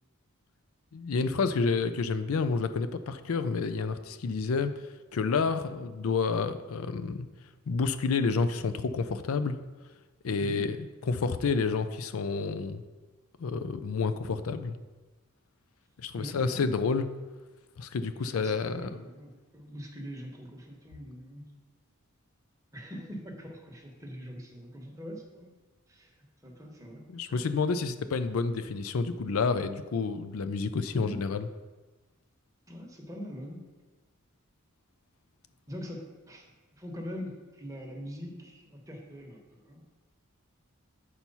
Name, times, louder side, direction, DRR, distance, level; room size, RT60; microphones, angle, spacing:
voice 1, 0.9-4.7 5.1-7.3 7.7-9.6 10.2-10.8 11.1-12.8 13.4-14.8 16.0-17.1 17.8-19.0 27.1-31.5, left 4 dB, 85° left, 11 dB, 0.5 m, -29 dB
voice 2, 16.1-16.7 18.1-21.4 22.7-25.5 25.9-26.1 26.4-27.0 27.3-27.4 30.9-31.2 32.7-33.6 35.7-39.8, equal, 15° right, 0 dB, 1.2 m, -43 dB
8.2 x 4.5 x 5.5 m, 1.2 s
head